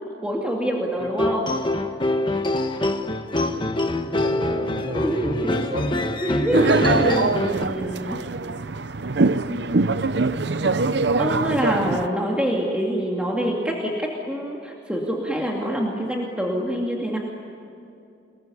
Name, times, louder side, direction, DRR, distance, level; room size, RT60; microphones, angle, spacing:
voice 1, 0.2-1.6 4.9-5.5 6.2-6.7 7.5-8.2 11.2-17.2, equal, 5° right, -2 dB, 2.5 m, -25 dB
sound 1, 1.0-7.7, left 2 dB, 25° left, 1.3 m, -25 dB
voice 2, 3.3-5.9, right 1 dB, 45° right, 1 dB, 7.7 m, -33 dB
sound 2, 6.5-12.1, right 3 dB, 65° right, 0.8 m, -22 dB
28.5 x 21.0 x 9.7 m, 2.7 s
head